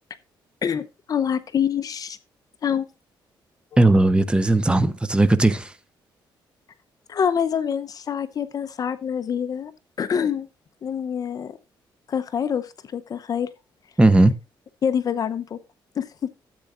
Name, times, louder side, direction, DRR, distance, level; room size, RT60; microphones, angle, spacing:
voice 1, 0.6-2.2 2.6-2.9 3.7-3.8 7.1-9.7 10.0-10.5 10.8-11.6 12.1-13.5 14.8-15.6 16.0-16.3, left 8 dB, 45° left, 0.7 m, -26 dB
voice 2, 3.8-5.7 14.0-14.3, right 2 dB, 10° right, 0.7 m, -17 dB
13.5 x 8.2 x 2.5 m
cardioid pair, 130°, 9 cm